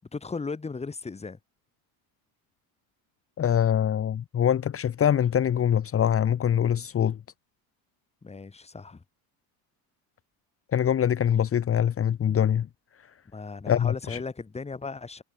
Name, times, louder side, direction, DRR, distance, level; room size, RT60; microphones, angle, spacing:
voice 1, 0.1-1.4 8.2-9.0 13.3-15.2, left 4 dB, 15° left, 2.3 m, -36 dB
voice 2, 3.4-7.2 10.7-12.7 13.7-14.2, left 9 dB, 30° left, 1.7 m, -24 dB
supercardioid pair, 110°, 43 cm